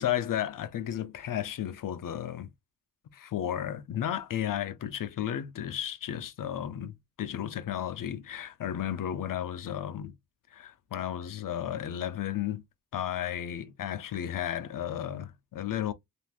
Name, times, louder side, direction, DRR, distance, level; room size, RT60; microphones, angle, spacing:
voice 1, 0.0-2.5 3.1-10.1 10.5-12.6 12.9-15.9, left 10 dB, 60° left, 0.5 m, -33 dB
3.4 x 2.5 x 2.4 m
wide cardioid pair, 150°, 36 cm